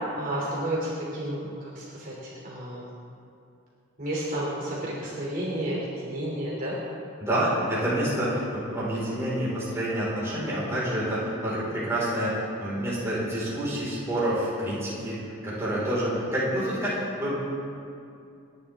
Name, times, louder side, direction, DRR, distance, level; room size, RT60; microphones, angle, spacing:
voice 1, 0.2-2.9 4.0-6.7, right 1 dB, 40° right, -6 dB, 3.1 m, -31 dB
voice 2, 7.2-17.3, right 1 dB, 15° right, -8 dB, 4.8 m, -28 dB
29.5 x 10.5 x 3.7 m, 2.6 s
head